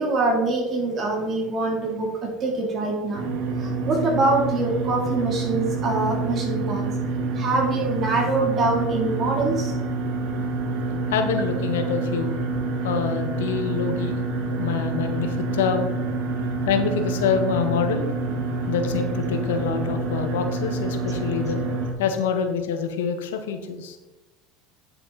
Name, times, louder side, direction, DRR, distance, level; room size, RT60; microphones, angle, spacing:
voice 1, 0.0-3.3 3.6-6.9 7.3-9.7, right 3 dB, 40° right, 0 dB, 3.3 m, -24 dB
sound 1, 3.1-21.9, right 3 dB, 70° right, 1.9 m, -27 dB
voice 2, 11.1-12.4 12.8-14.2 14.5-15.9 16.7-18.1 18.7-21.6 22.0-24.0, left 6 dB, 85° left, 6 dB, 1.4 m, -26 dB
10.0 x 6.8 x 4.1 m, 1.1 s
supercardioid pair, 105°, 0 cm